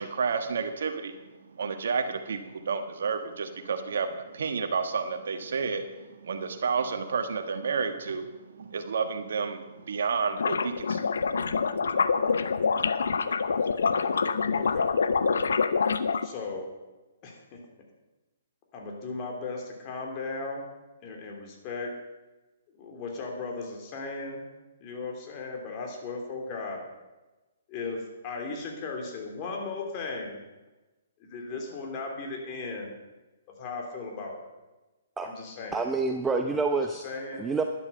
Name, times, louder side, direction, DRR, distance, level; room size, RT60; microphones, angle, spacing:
voice 1, 0.0-11.1 11.6-12.6, right 5 dB, 65° right, 8 dB, 1.3 m, -31 dB
sound 1, 10.4-16.3, left 5 dB, 75° left, 0.7 m, -26 dB
voice 2, 14.5-14.9 16.2-16.7 17.2-17.6 18.7-20.6 21.0-22.0 22.8-24.4 24.8-26.9 27.7-30.4 31.2-32.9 33.6-34.4 35.2-35.8 36.9-37.5, left 3 dB, 35° left, 1 dB, 3.2 m, -36 dB
voice 3, 35.7-37.0 37.4-37.6, right 3 dB, 10° right, 4 dB, 0.7 m, -27 dB
12.0 x 11.0 x 5.6 m, 1.1 s
hypercardioid pair, 130°, 0 cm